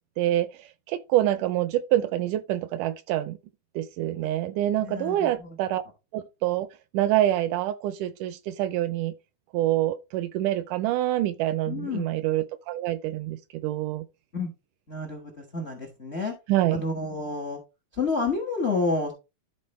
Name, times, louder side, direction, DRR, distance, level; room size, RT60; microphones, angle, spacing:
voice 1, 0.2-0.5 0.9-3.4 3.8-5.8 6.1-6.7 6.9-9.1 9.5-14.1 16.5-16.8, right 13 dB, 80° right, 1.9 m, -26 dB
voice 2, 4.8-5.5 11.7-12.1 14.3-14.5 14.9-16.3 16.7-17.6 17.9-19.1, left 3 dB, 65° left, 0.6 m, -29 dB
13.0 x 4.4 x 3.1 m
omnidirectional pair, 3.9 m